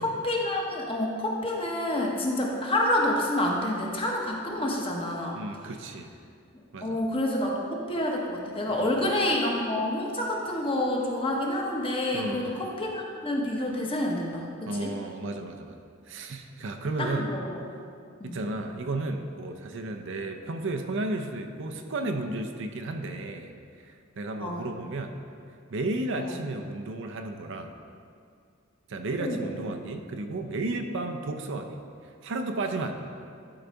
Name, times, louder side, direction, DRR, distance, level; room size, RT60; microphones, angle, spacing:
voice 1, 0.0-5.4 6.8-14.9 17.0-17.4 18.2-18.4 24.4-24.7 29.2-29.5, left 1 dB, 25° left, -1 dB, 1.0 m, -28 dB
voice 2, 5.3-6.1 6.7-7.0 8.7-9.0 12.1-12.6 14.6-15.8 16.1-17.3 18.2-25.1 25.7-27.7 28.9-31.8 32.0-33.0, right 2 dB, 65° right, 6 dB, 0.6 m, -33 dB
11.5 x 4.0 x 4.6 m, 2.3 s
head